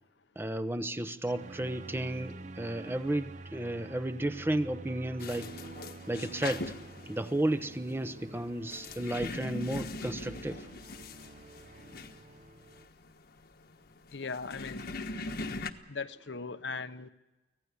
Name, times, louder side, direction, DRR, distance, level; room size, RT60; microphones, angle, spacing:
voice 1, 0.4-5.5 6.1-6.7 7.1-10.7, right 1 dB, 10° right, 10 dB, 0.9 m, -33 dB
sound 1, 1.3-12.9, right 2 dB, 40° right, 1.0 m, -48 dB
sound 2, 5.2-15.7, left 2 dB, 55° left, 1.3 m, -41 dB
voice 2, 14.1-14.8 15.3-15.6 15.9-17.1, left 4 dB, 70° left, 11 dB, 0.9 m, -39 dB
25.0 x 17.0 x 8.3 m, 1.1 s
head